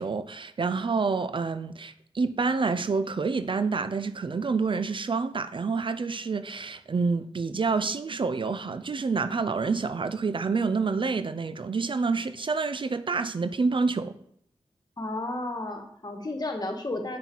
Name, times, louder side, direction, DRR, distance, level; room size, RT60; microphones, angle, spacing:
voice 1, 0.0-14.1, right 4 dB, 50° right, 0.5 m, -28 dB
voice 2, 15.0-17.2, left 2 dB, 35° left, 1.6 m, -32 dB
7.4 x 5.6 x 4.5 m
cardioid pair, 45°, 11 cm